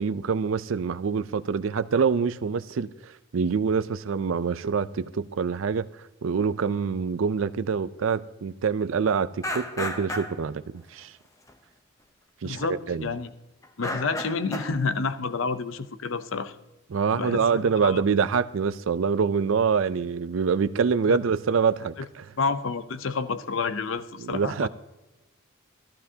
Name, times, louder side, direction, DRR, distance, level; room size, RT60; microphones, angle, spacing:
voice 1, 0.0-5.9 6.2-11.1 12.4-13.1 16.9-22.2 24.2-24.7, right 6 dB, 70° right, 0.4 m, -25 dB
sound 1, 9.4-10.4 11.5-11.6 12.5-12.7 13.0-13.3 13.6-14.8, left 1 dB, 15° left, 0.7 m, -33 dB
voice 2, 12.4-13.3 13.8-16.6 17.1-18.0 21.1-21.2 22.0-22.1 22.4-24.7, left 4 dB, 70° left, 0.6 m, -29 dB
14.5 x 13.5 x 2.8 m
head